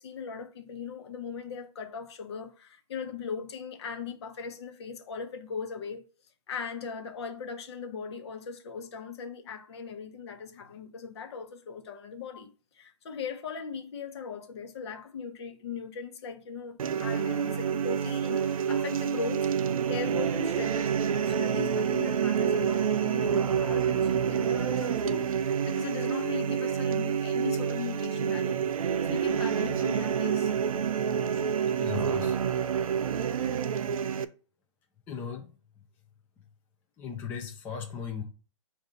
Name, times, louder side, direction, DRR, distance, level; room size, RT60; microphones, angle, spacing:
voice 1, 0.0-6.0 6.5-19.5 19.9-28.6 29.0-30.5, left 6 dB, 50° left, 0.9 m, -39 dB
sound 1, 16.8-34.2, right 7 dB, 85° right, 0.5 m, -28 dB
voice 2, 31.8-32.4 35.1-35.5 37.0-38.2, left 7 dB, 10° left, 0.3 m, -36 dB
5.0 x 2.5 x 4.0 m
hypercardioid pair, 155°, 17 cm